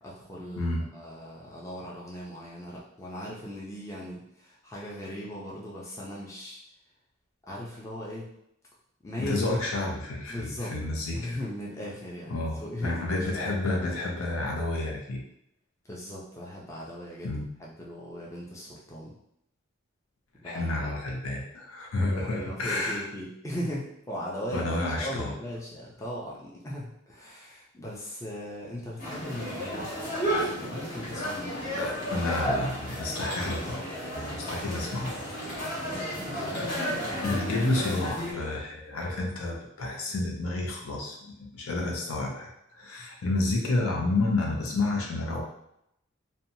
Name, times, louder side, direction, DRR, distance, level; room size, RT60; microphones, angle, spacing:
voice 1, 0.0-6.6 7.4-8.3 9.0-9.5 10.3-10.8 11.1-13.4 15.9-17.3 17.6-19.1 20.4-20.8 22.0-24.7 25.0-31.8 36.2-37.5, equal, 15° left, -5 dB, 0.4 m, -38 dB
voice 2, 9.2-11.4 12.3-15.2 17.2-17.4 20.4-23.0 24.5-25.3 31.8-33.9 34.1-35.2 37.2-45.4, left 2 dB, 85° left, -1 dB, 0.6 m, -30 dB
sound 1, 29.0-38.3, equal, 45° left, 1.0 m, -33 dB
2.7 x 2.2 x 2.7 m, 0.77 s
head